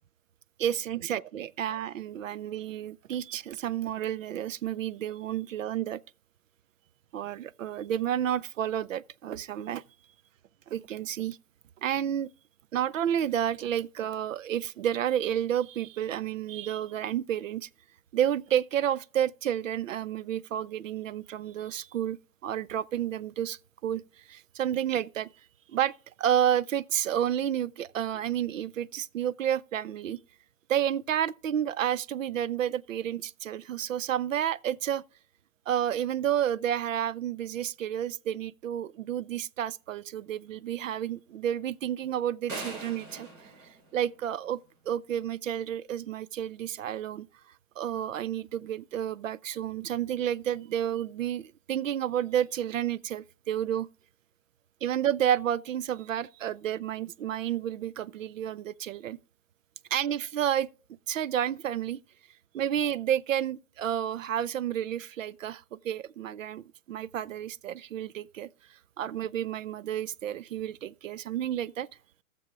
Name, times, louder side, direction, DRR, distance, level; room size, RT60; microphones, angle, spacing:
voice 1, 0.6-6.0 7.1-9.8 10.7-11.4 11.8-12.3 12.7-17.7 18.1-25.3 25.7-30.2 30.7-35.0 35.7-43.3 43.9-44.6 44.9-47.3 47.8-53.9 54.8-59.2 59.9-60.7 61.1-62.0 62.5-71.9, right 10 dB, 65° right, 0.5 m, -30 dB
sound 1, 42.5-44.6, right 3 dB, 85° right, 4.2 m, -41 dB
16.0 x 6.9 x 3.7 m
hypercardioid pair, 140°, 43 cm